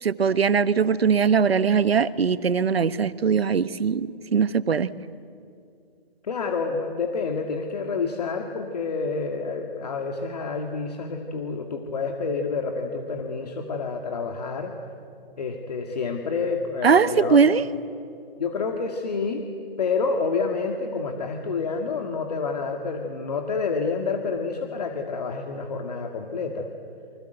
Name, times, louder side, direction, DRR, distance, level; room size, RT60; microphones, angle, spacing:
voice 1, 0.0-4.9 16.8-17.6, right 6 dB, 80° right, 15 dB, 1.2 m, -21 dB
voice 2, 6.2-14.7 15.4-17.4 18.4-19.4 19.8-26.7, left 4 dB, 40° left, 3 dB, 2.0 m, -28 dB
29.0 x 24.5 x 8.0 m, 2.4 s
hypercardioid pair, 170°, 30 cm